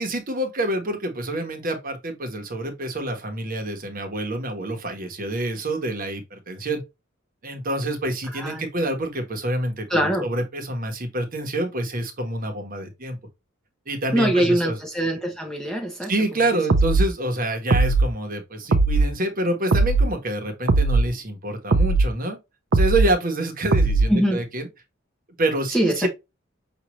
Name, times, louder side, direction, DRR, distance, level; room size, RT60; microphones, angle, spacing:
voice 1, 0.0-6.8 7.4-13.2 13.9-14.8 16.1-22.4 22.7-24.7 25.3-26.1, right 1 dB, 45° right, 1.1 m, -27 dB
voice 2, 8.3-8.7 9.9-10.3 14.1-16.1 16.4-16.6 24.1-24.5 25.7-26.1, right 1 dB, 5° left, 0.7 m, -23 dB
sound 1, 16.7-17.1 17.7-18.1 18.7-19.1 19.7-20.1 20.7-21.1 21.7-22.1 22.7-23.1 23.7-24.1, right 3 dB, 60° right, 0.6 m, -18 dB
6.2 x 2.6 x 3.0 m
head